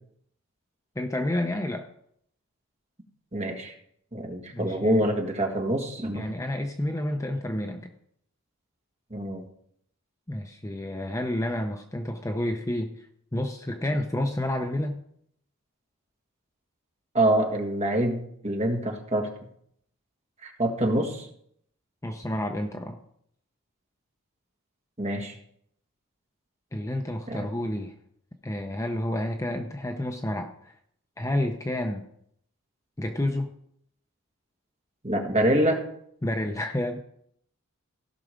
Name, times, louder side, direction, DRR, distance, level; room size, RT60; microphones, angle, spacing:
voice 1, 1.0-1.9 4.5-5.0 6.1-7.9 10.3-13.1 13.3-15.0 22.0-23.0 26.7-27.9 28.4-30.7 31.2-32.0 33.0-33.5 36.2-37.0, left 1 dB, 15° left, 5 dB, 0.6 m, -30 dB
voice 2, 3.3-3.7 4.1-6.2 9.1-9.4 17.1-19.3 20.4-21.3 25.0-25.3 27.3-27.5 35.0-35.8, right 1 dB, 30° right, 2 dB, 1.7 m, -25 dB
16.0 x 6.1 x 5.1 m, 0.69 s
head